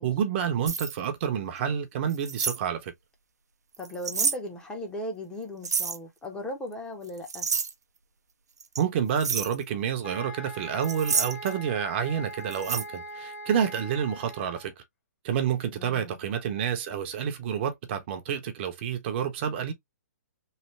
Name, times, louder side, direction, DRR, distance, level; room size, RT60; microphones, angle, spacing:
voice 1, 0.0-2.9 8.8-14.7 15.2-19.7, right 8 dB, 40° right, 0.7 m, -29 dB
sound 1, 0.7-0.9 2.1-2.6 3.7-4.4 5.6-6.0 7.0-7.7 8.6-8.8 9.2-9.6 10.8-11.5 12.5-12.8, right 5 dB, 85° right, 0.6 m, -28 dB
voice 2, 3.8-7.5 15.7-16.2, left 1 dB, 10° left, 0.8 m, -37 dB
sound 2, 10.0-14.7, right 1 dB, 65° left, 1.0 m, -41 dB
3.2 x 2.1 x 3.1 m
hypercardioid pair, 135°, 9 cm